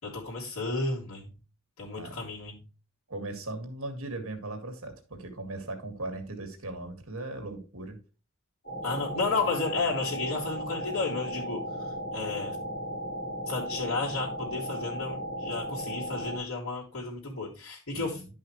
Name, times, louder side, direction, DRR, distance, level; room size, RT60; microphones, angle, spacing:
voice 1, 0.0-1.3 1.8-2.6 8.8-12.6 13.5-18.4, left 3 dB, 70° left, -7 dB, 3.1 m, -32 dB
voice 2, 3.1-8.0 17.9-18.2, right 2 dB, 70° right, 5 dB, 2.2 m, -38 dB
sound 1, 8.6-16.4, equal, 45° left, 4.1 m, -36 dB
11.0 x 5.6 x 3.1 m, 0.32 s
head